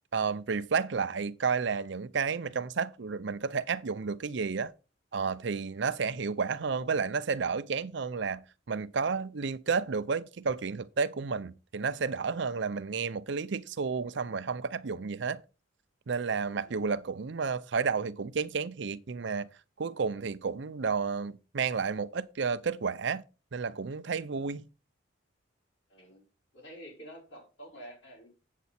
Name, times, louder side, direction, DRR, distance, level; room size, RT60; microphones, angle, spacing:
voice 1, 0.1-4.7 5.1-8.4 8.7-15.4 16.1-19.5 19.8-23.2 23.5-24.7, right 5 dB, 65° right, 0.6 m, -31 dB
voice 2, 25.9-26.2 26.5-28.3, equal, 65° left, 4.7 m, -49 dB
8.2 x 7.5 x 4.2 m
head